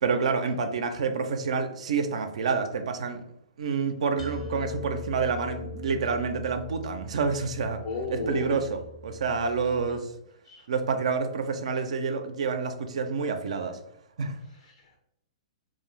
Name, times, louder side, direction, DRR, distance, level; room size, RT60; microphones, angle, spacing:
voice 1, 0.0-3.2 3.6-7.8 8.1-10.1 10.7-13.8 14.2-14.4, right 5 dB, 70° right, 0.4 m, -28 dB
sound 1, 4.2-10.0, left 2 dB, 80° left, 0.9 m, -41 dB
voice 2, 7.8-8.7 10.4-10.7 14.5-15.0, left 3 dB, 65° left, 0.5 m, -35 dB
2.5 x 2.2 x 3.0 m
hypercardioid pair, 125°, 4 cm